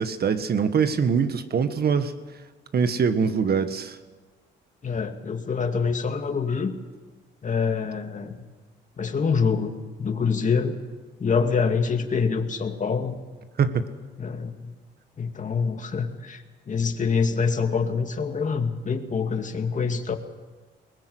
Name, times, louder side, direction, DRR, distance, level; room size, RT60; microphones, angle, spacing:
voice 1, 0.0-2.1 2.7-4.0 13.6-13.9, right 6 dB, 50° right, 11 dB, 1.7 m, -23 dB
voice 2, 4.8-6.7 7.4-8.4 9.0-10.8 11.2-13.2 14.2-14.7 15.2-20.2, left 5 dB, 40° left, 5 dB, 2.4 m, -26 dB
21.0 x 20.5 x 8.0 m, 1.4 s
cardioid pair, 90°, 20 cm